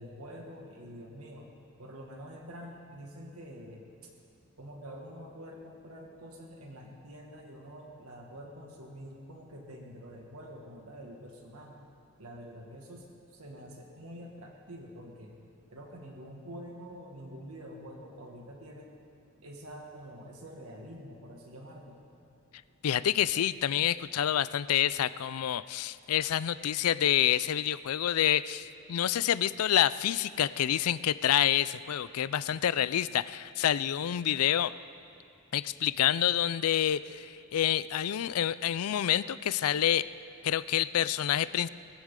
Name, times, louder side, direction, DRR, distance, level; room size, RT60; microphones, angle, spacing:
voice 1, 0.0-1.5 1.8-3.8 4.6-11.8 12.2-15.4 15.7-19.0 19.4-22.0, equal, 80° right, 0 dB, 1.9 m, -46 dB
voice 2, 22.8-34.7 35.5-40.1 40.4-41.7, left 10 dB, 80° left, 16 dB, 0.4 m, -28 dB
21.5 x 15.5 x 3.8 m, 2.7 s
head